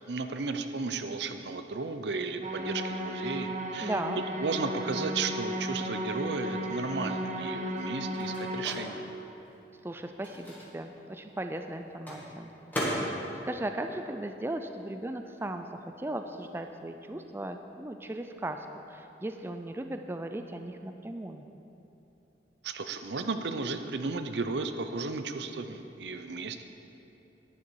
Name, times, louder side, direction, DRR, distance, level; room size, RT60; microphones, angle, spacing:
voice 1, 0.1-3.9 4.4-9.0 22.6-26.6, right 4 dB, 75° right, 8 dB, 0.6 m, -34 dB
sound 1, 2.4-8.6, equal, 45° right, 0.9 m, -34 dB
voice 2, 3.8-4.2 9.8-12.5 13.4-21.4, right 1 dB, 15° right, 6 dB, 0.3 m, -37 dB
Microwave oven, 7.5-14.9 15.2-17.1, equal, 10° left, 1.9 m, -40 dB
10.5 x 10.0 x 4.7 m, 3.0 s
head